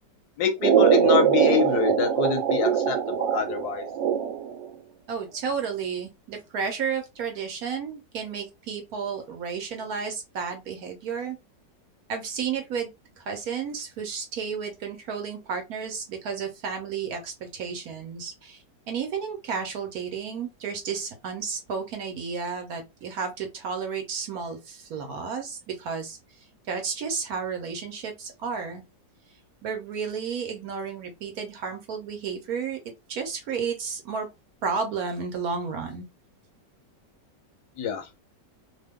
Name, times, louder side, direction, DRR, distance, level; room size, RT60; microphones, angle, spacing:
voice 1, 0.4-3.8 37.8-38.0, left 7 dB, 75° left, 1.0 m, -26 dB
sound 1, 0.6-4.6, right 8 dB, 85° right, 1.3 m, -22 dB
voice 2, 5.1-11.4 12.1-12.9 13.2-18.6 18.9-26.2 26.7-28.8 29.6-32.8 33.1-34.3 34.6-36.0, right 6 dB, 65° right, 1.0 m, -32 dB
2.9 x 2.2 x 3.4 m
omnidirectional pair, 1.9 m